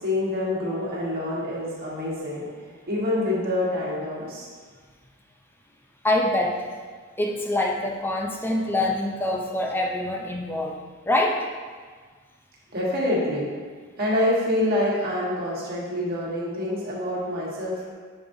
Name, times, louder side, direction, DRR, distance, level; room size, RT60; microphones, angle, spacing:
voice 1, 0.0-2.5 2.9-4.5 12.7-13.5 14.0-17.9, left 1 dB, 45° right, -6 dB, 1.6 m, -26 dB
voice 2, 6.0-6.7 7.2-10.8 11.1-11.5, left 1 dB, 10° left, 0 dB, 0.5 m, -25 dB
6.8 x 5.2 x 2.7 m, 1.5 s
head